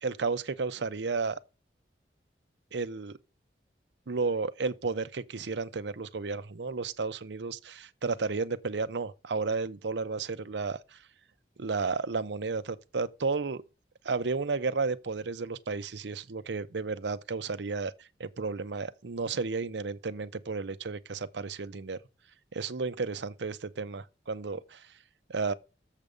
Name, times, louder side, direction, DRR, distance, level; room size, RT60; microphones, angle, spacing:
voice 1, 0.0-1.4 2.7-3.2 4.1-11.0 11.6-13.6 14.0-22.0 22.5-24.9 25.3-25.5, right 4 dB, 85° right, 0.7 m, -33 dB
7.4 x 5.2 x 6.8 m
head